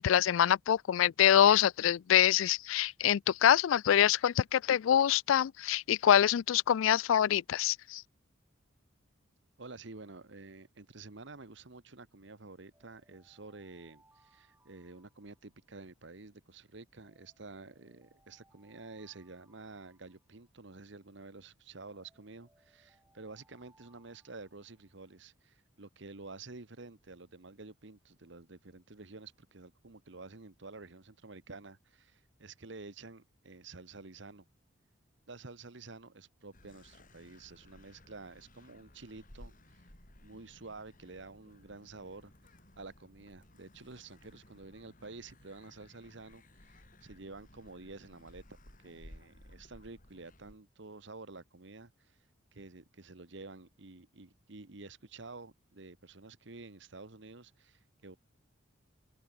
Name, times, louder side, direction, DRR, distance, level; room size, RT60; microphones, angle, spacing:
voice 1, 0.0-8.0, left 10 dB, 75° left, 0.3 m, -25 dB
voice 2, 9.6-34.4 35.3-39.8 40.2-48.4 48.8-52.2 52.5-58.2, right 3 dB, 60° right, 1.3 m, -50 dB
sound 1, 12.7-15.9 17.0-20.8 21.9-25.1, right 2 dB, 10° right, 7.7 m, -70 dB
sound 2, 36.5-50.6, left 1 dB, 40° left, 3.9 m, -58 dB
open air
head